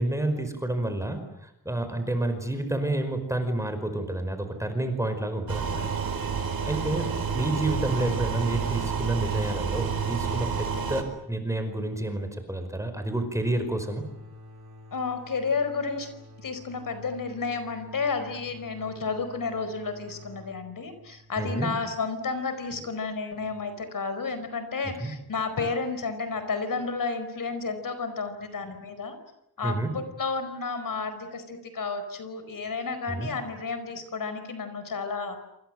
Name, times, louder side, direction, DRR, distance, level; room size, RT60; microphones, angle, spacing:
voice 1, 0.0-5.8 6.6-7.1 7.3-14.0 21.4-21.7 25.0-25.1 29.6-29.9 33.1-33.3, right 1 dB, 10° right, 7 dB, 5.2 m, -29 dB
sound 1, 5.5-11.0, right 6 dB, 75° right, 4.7 m, -29 dB
sound 2, 13.2-22.7, left 1 dB, 90° right, 6.0 m, -49 dB
voice 2, 14.9-16.1 16.4-29.2 29.6-35.4, left 4 dB, 60° left, 10 dB, 4.8 m, -31 dB
28.0 x 27.0 x 7.8 m, 0.83 s
wide cardioid pair, 155°, 36 cm